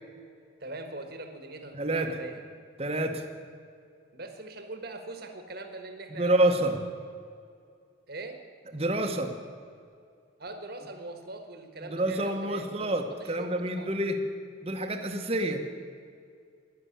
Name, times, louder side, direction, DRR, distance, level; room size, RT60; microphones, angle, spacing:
voice 1, 0.6-2.4 4.1-6.6 8.1-8.4 10.4-13.9, right 2 dB, 50° right, 6 dB, 1.4 m, -41 dB
voice 2, 1.7-2.1 2.8-3.2 6.1-6.8 8.7-9.4 11.8-14.2 14.6-15.6, right 1 dB, 30° right, 4 dB, 1.0 m, -28 dB
11.0 x 11.0 x 8.6 m, 2.3 s
head